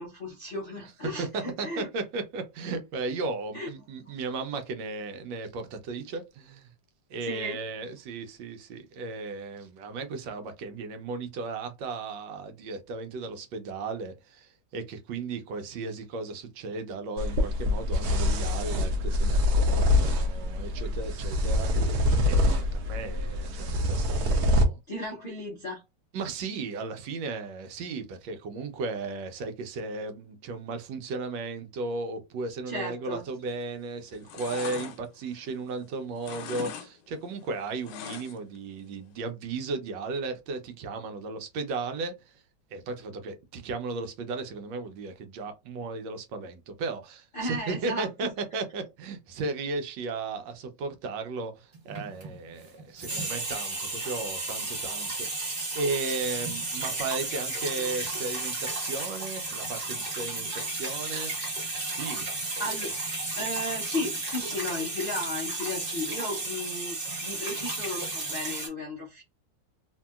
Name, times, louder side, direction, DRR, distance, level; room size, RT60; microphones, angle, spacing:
voice 1, 0.0-1.9 3.5-3.7 7.2-7.6 24.9-25.8 32.7-33.2 47.3-48.3 62.6-62.9 63.4-69.2, left 1 dB, 65° left, 0.5 m, -35 dB
voice 2, 1.0-6.7 7.1-24.8 26.1-42.4 42.7-61.3 61.9-62.3, right 3 dB, 80° right, 1.3 m, -35 dB
sound 1, 17.2-24.6, left 1 dB, 65° right, 1.0 m, -25 dB
sound 2, 33.4-33.8 34.1-35.9 36.2-36.9 37.1-38.6 38.9-39.0, left 8 dB, 80° left, 1.2 m, -40 dB
sound 3, 51.7-52.5 52.8-68.7, right 2 dB, 35° right, 1.2 m, -33 dB
3.0 x 2.7 x 2.3 m
omnidirectional pair, 2.0 m